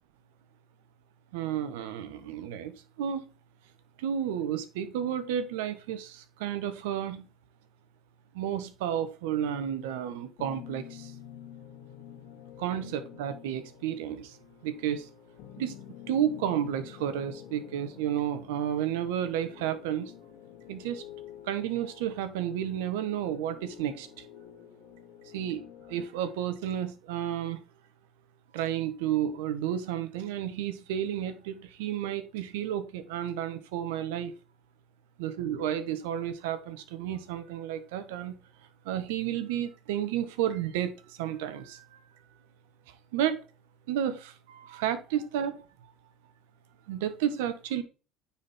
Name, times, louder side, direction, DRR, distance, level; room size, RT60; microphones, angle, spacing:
voice 1, 1.3-2.7 3.0-3.2 4.0-7.2 8.3-10.8 12.6-14.3 14.6-15.0 15.6-15.7 16.1-20.1 20.7-21.0 21.5-24.1 25.3-25.6 25.9-27.6 28.5-34.3 35.2-38.3 38.9-40.9 41.2-41.8 43.1-43.4 43.9-45.5 46.9-47.8, right 10 dB, 85° right, 1.0 m, -31 dB
sound 1, 10.4-26.0, left 10 dB, 75° left, 1.9 m, -49 dB
9.4 x 4.3 x 3.5 m
supercardioid pair, 80°, 0 cm